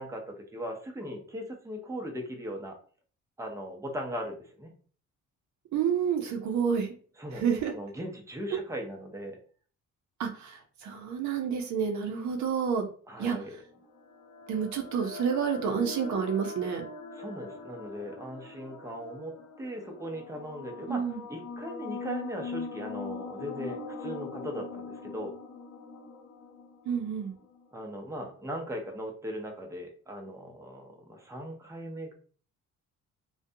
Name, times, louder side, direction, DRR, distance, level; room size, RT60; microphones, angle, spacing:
voice 1, 0.0-2.8 3.4-4.7 7.2-9.4 13.1-13.6 17.1-25.3 27.7-32.1, equal, 10° right, 2 dB, 0.6 m, -39 dB
voice 2, 5.7-6.9 7.3-7.7 8.5-8.6 10.2-12.9 13.2-13.4 14.5-16.8 20.9-21.2 26.9-27.4, right 7 dB, 70° right, 4 dB, 0.6 m, -29 dB
sound 1, 13.5-27.7, left 4 dB, 70° left, 0.6 m, -42 dB
2.5 x 2.2 x 2.6 m, 0.42 s
cardioid pair, 90°, 30 cm